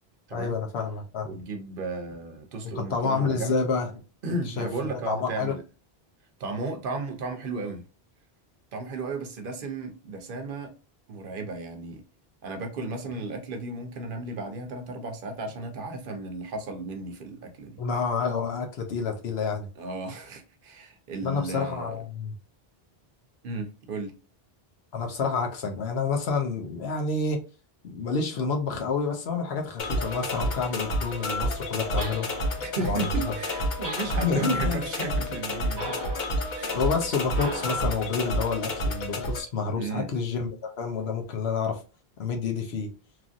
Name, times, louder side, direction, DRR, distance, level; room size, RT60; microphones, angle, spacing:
voice 1, 0.3-1.4 2.6-3.9 4.5-5.6 17.8-19.7 21.2-22.3 24.9-27.4 27.8-32.3 32.8-33.1 34.2-34.8 36.7-41.8 42.2-42.9, left 4 dB, 85° left, 1.0 m, -29 dB
voice 2, 1.2-3.6 4.2-5.6 6.4-7.8 8.7-10.7 11.1-12.0 12.4-17.8 19.8-22.0 23.4-24.1 32.6-36.0 36.5-36.8 39.8-40.1, right 3 dB, 60° right, 0.8 m, -34 dB
sound 1, 29.8-39.4, left 1 dB, 55° left, 0.7 m, -30 dB
sound 2, 32.0-32.7 33.8-34.6 35.8-36.3 37.3-38.0, right 1 dB, 10° left, 1.1 m, -37 dB
3.0 x 2.5 x 2.4 m
omnidirectional pair, 1.0 m